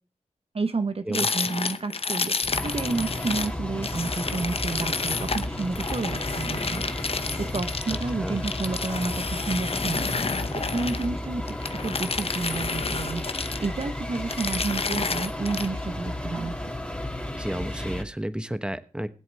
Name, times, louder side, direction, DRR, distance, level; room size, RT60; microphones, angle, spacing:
voice 1, 0.5-6.8 7.4-10.1 10.5-11.6 11.8-16.6, right 3 dB, 45° right, 10 dB, 0.9 m, -30 dB
sound 1, 1.1-3.5 3.8-11.1 11.5-13.8 14.1-15.7, left 4 dB, 45° left, 0.8 m, -30 dB
sound 2, 2.4-18.0, left 1 dB, 10° left, 2.6 m, -33 dB
voice 2, 7.9-8.4 17.4-19.1, right 1 dB, 5° right, 11 dB, 1.1 m, -32 dB
21.0 x 7.7 x 3.4 m, 0.39 s
cardioid pair, 45°, 13 cm